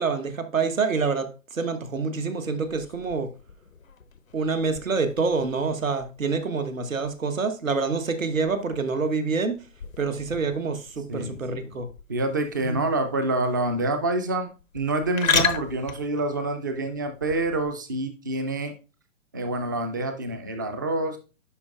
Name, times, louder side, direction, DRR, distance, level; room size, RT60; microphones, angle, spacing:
voice 1, 0.0-3.3 4.3-9.6 10.0-11.9 12.6-12.8, right 4 dB, 80° right, 1.2 m, -27 dB
sound 1, 2.6-17.7, left 6 dB, 90° left, 0.8 m, -35 dB
voice 2, 12.1-18.7 19.3-21.2, right 2 dB, 15° right, 0.3 m, -27 dB
10.5 x 4.4 x 2.4 m
figure-of-eight pair, 125°, 39 cm